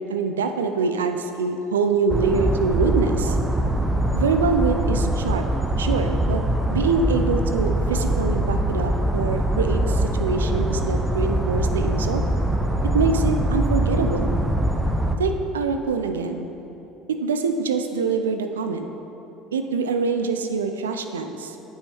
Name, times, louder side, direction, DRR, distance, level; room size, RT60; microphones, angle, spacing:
voice 1, 0.1-3.4 4.1-5.5 5.8-6.4 6.7-12.2 12.9-14.4 15.2-16.5 17.1-18.9 19.5-21.6, right 4 dB, 85° right, 7 dB, 0.4 m, -24 dB
sound 1, 2.1-15.2, right 1 dB, 10° right, 0.7 m, -23 dB
9.6 x 5.5 x 3.4 m, 3.0 s
hypercardioid pair, 70°, 0 cm